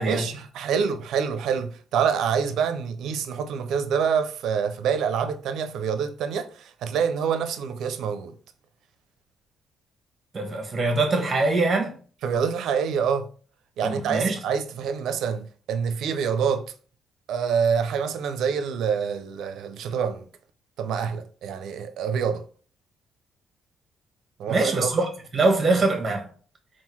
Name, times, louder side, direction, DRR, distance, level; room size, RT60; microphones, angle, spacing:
voice 1, 0.1-8.3 12.2-13.3 13.8-16.7 17.3-20.2 20.8-22.4 24.4-25.0, right 7 dB, 80° right, 0.5 m, -26 dB
voice 2, 10.3-11.9 13.8-14.4 24.5-26.3, right 3 dB, 35° right, 1.1 m, -23 dB
3.7 x 2.4 x 4.4 m
cardioid pair, 90°, 0 cm